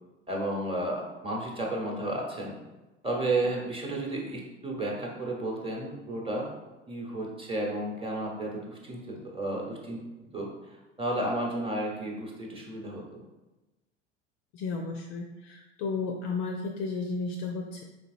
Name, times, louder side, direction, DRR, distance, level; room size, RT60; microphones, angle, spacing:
voice 1, 0.3-2.6 3.0-6.5 6.9-10.0 10.3-13.2, right 1 dB, 15° right, -2 dB, 1.0 m, -32 dB
voice 2, 14.5-17.8, left 4 dB, 40° left, 3 dB, 0.4 m, -33 dB
4.3 x 3.8 x 2.5 m, 1.1 s
figure-of-eight pair, 75°, 37 cm